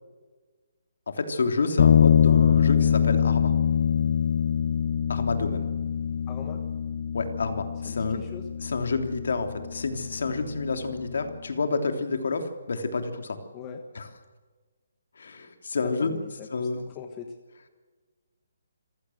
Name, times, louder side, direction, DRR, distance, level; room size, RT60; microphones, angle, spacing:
voice 1, 1.1-3.5 5.1-5.7 7.1-8.2 8.6-13.4 13.9-14.1 15.2-16.1 16.5-16.8, left 4 dB, 55° left, 7 dB, 3.2 m, -29 dB
sound 1, 1.8-11.3, left 8 dB, 35° left, 0.7 m, -24 dB
voice 2, 6.3-6.6 7.8-8.4 13.5-13.8 15.8-17.4, left 7 dB, 15° left, 4 dB, 1.2 m, -41 dB
26.5 x 16.0 x 7.9 m, 1.4 s
hypercardioid pair, 180°, 0 cm